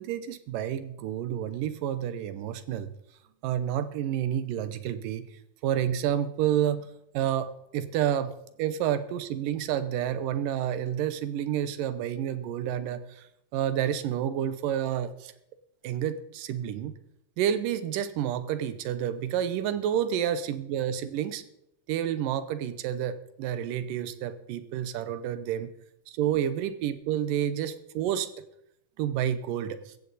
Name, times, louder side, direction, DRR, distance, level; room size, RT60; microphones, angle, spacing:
voice 1, 0.0-2.9 3.4-5.3 5.6-6.9 7.1-15.3 15.8-16.9 17.4-21.4 21.9-25.7 26.1-28.3 29.0-29.9, right 10 dB, 85° right, 12 dB, 2.6 m, -29 dB
15.5 x 15.0 x 4.1 m, 0.79 s
omnidirectional pair, 3.7 m